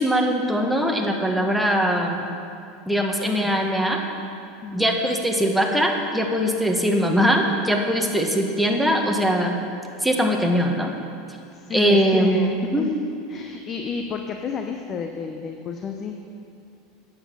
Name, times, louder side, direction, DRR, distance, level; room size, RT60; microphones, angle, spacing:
voice 1, 0.0-2.3 2.9-4.0 4.7-9.5 10.0-10.9 11.7-12.9, equal, ahead, 1 dB, 1.5 m, -21 dB
voice 2, 11.5-12.9 13.3-16.2, left 5 dB, 35° left, 5 dB, 0.8 m, -31 dB
10.0 x 8.4 x 6.9 m, 2.5 s
supercardioid pair, 105°, 0 cm